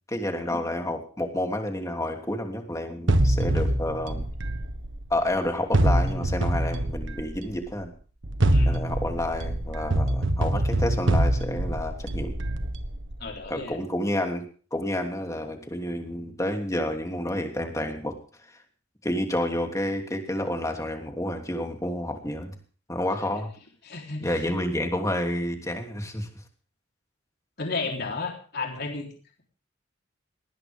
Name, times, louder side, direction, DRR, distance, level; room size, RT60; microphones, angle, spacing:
voice 1, 0.1-4.3 5.1-7.9 8.6-12.4 13.5-14.4 14.7-18.1 18.5-18.6 19.0-22.5 22.9-23.5 24.2-26.3, left 1 dB, 15° left, 3 dB, 2.9 m, -29 dB
sound 1, 3.1-5.2 5.7-7.6 8.2-13.3, right 1 dB, 65° right, 1.5 m, -24 dB
voice 2, 13.2-13.8 23.8-24.3 27.6-29.1, left 3 dB, 55° left, 1 dB, 3.9 m, -33 dB
19.5 x 19.0 x 3.7 m, 0.41 s
head